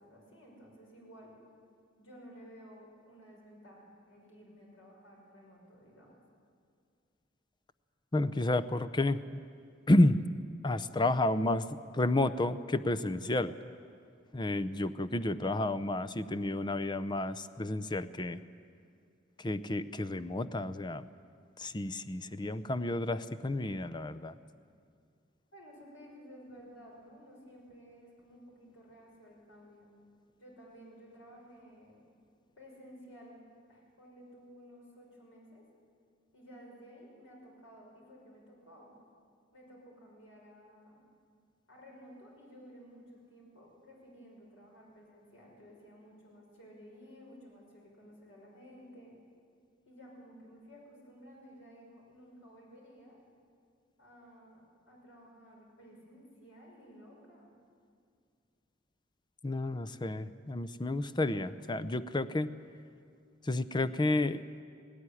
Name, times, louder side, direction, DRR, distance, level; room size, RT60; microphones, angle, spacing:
voice 1, 0.0-1.3 2.0-6.1 25.5-29.8 30.4-32.0 32.6-33.4 33.7-35.6 36.3-39.0 39.5-41.0 41.7-49.2 49.9-53.2 54.0-57.5, equal, 85° left, -2 dB, 5.4 m, -54 dB
voice 2, 8.1-9.4 9.9-10.2 10.6-13.5 14.3-18.4 19.4-21.1 21.6-24.3 59.4-62.5 63.4-64.4, left 1 dB, 25° left, 13 dB, 0.6 m, -31 dB
18.5 x 18.0 x 9.9 m, 2.2 s
head